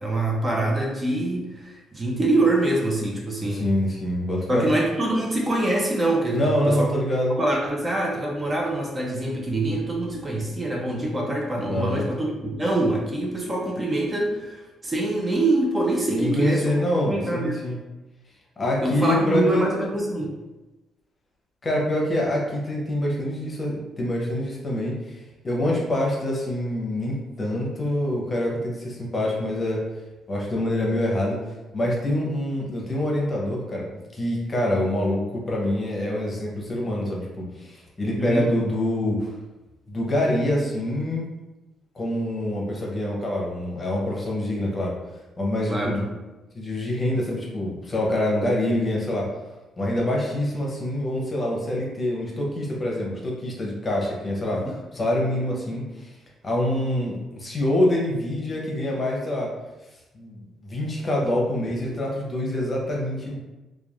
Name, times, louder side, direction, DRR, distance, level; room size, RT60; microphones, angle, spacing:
voice 1, 0.0-3.7 4.5-6.9 7.4-16.7 17.1-17.6 18.8-20.3 38.2-38.4 45.7-46.1, right 2 dB, 25° right, -2 dB, 0.5 m, -25 dB
voice 2, 3.4-4.7 6.3-7.4 11.7-12.1 16.1-17.8 18.6-19.6 21.6-29.9 30.3-33.9 34.1-39.3 39.9-41.3 41.9-44.9 45.4-46.0 46.5-49.3 49.8-56.1 56.4-59.5 60.1-63.4, left 1 dB, 30° left, -3 dB, 0.8 m, -25 dB
3.0 x 2.3 x 2.4 m, 1.1 s
cardioid pair, 90°, 0 cm